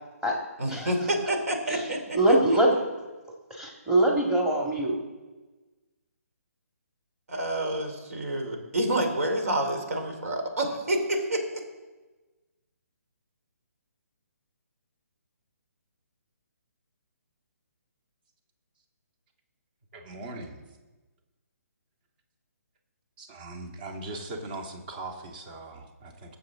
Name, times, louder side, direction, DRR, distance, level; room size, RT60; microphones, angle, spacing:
voice 1, 0.6-2.2 7.3-11.6, right 1 dB, 65° right, 4 dB, 3.1 m, -28 dB
voice 2, 2.1-2.8 3.5-5.0, right 1 dB, 5° right, -1 dB, 1.9 m, -23 dB
voice 3, 19.9-20.6 23.2-26.4, right 2 dB, 40° right, 2 dB, 2.1 m, -40 dB
20.5 x 7.2 x 3.7 m, 1.2 s
hypercardioid pair, 150°, 9 cm